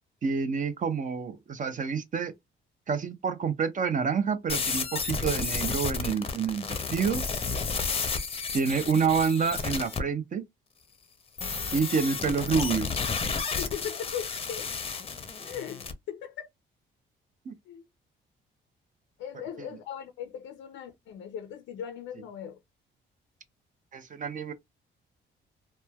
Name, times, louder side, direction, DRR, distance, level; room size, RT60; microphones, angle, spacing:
voice 1, 0.2-2.3 2.9-7.2 8.5-10.4 11.7-12.9 17.5-17.6 23.9-24.5, right 6 dB, 40° right, 0.5 m, -28 dB
sound 1, 4.5-10.0 11.4-15.9, left 5 dB, 30° left, 0.5 m, -32 dB
voice 2, 13.6-14.7 15.4-16.5 17.7-17.9 19.2-22.6, left 9 dB, 85° left, 0.5 m, -39 dB
3.0 x 2.1 x 2.2 m
cardioid pair, 90°, 20 cm